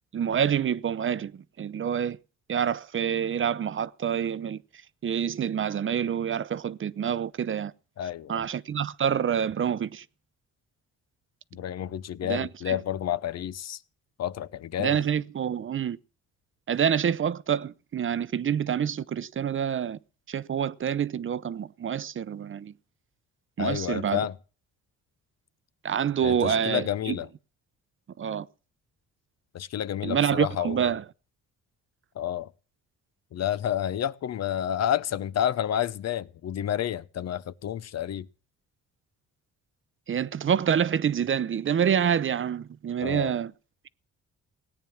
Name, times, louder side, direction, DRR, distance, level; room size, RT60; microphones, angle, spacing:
voice 1, 0.1-1.3 1.6-2.2 2.5-4.6 5.0-7.7 8.3-10.0 12.2-12.8 14.8-16.0 16.7-20.0 20.3-22.7 23.6-24.3 25.8-27.2 28.2-28.5 30.0-31.0 40.1-43.5, right 8 dB, 40° right, 0.8 m, -27 dB
voice 2, 8.0-8.4 11.5-13.8 14.2-15.0 23.6-24.3 26.2-27.3 29.5-30.8 32.2-32.5 33.3-38.3 43.0-43.3, left 10 dB, 60° left, 0.9 m, -30 dB
18.0 x 9.2 x 7.3 m
cardioid pair, 90°, 30 cm